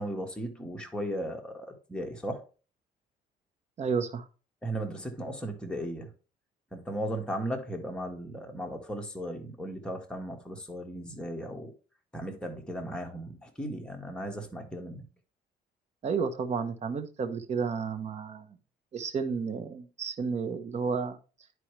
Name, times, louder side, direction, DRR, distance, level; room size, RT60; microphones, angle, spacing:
voice 1, 0.0-2.4 4.6-6.1 6.7-11.7 12.1-15.1, right 1 dB, 5° left, 1.7 m, -36 dB
voice 2, 3.8-4.3 16.0-18.6 18.9-21.2, right 5 dB, 40° right, 1.1 m, -31 dB
10.0 x 4.7 x 3.3 m
cardioid pair, 110°, 17 cm